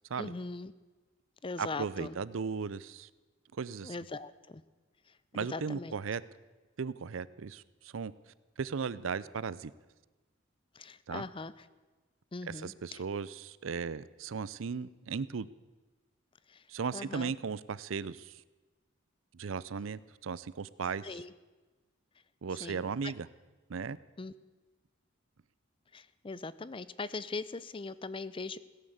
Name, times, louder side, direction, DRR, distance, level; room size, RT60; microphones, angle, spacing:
voice 1, 0.2-0.7 1.4-2.2 3.8-4.6 5.5-5.9 10.8-11.5 12.3-13.0 16.5-16.6 16.9-17.3 21.0-21.3 22.6-23.1 24.2-24.3 25.9-28.6, left 3 dB, 25° left, 17 dB, 0.5 m, -40 dB
voice 2, 1.6-3.1 3.6-4.0 5.3-6.2 6.8-8.1 8.6-9.7 11.1-11.2 12.4-15.5 16.7-18.4 19.3-21.1 22.4-23.3 23.7-24.0, right 5 dB, 80° right, 18 dB, 0.5 m, -36 dB
16.5 x 10.5 x 8.0 m, 1.2 s
head